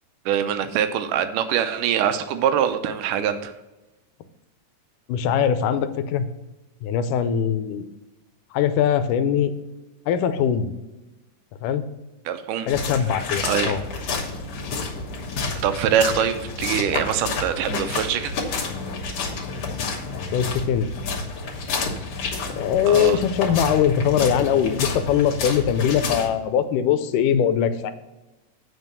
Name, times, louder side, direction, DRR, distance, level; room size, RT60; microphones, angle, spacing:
voice 1, 0.3-3.5 12.3-12.7 13.4-13.8 15.6-18.3 22.9-23.2, right 9 dB, 90° right, 9 dB, 2.3 m, -23 dB
voice 2, 5.1-6.3 6.8-7.8 8.5-9.5 10.1-10.7 11.6-11.8 12.7-13.8 20.3-20.9 22.6-27.9, left 8 dB, 90° left, 11 dB, 2.2 m, -21 dB
sound 1, 12.7-26.3, left 4 dB, 60° left, 2.2 m, -29 dB
8.1 x 5.1 x 6.7 m, 1.0 s
omnidirectional pair, 3.6 m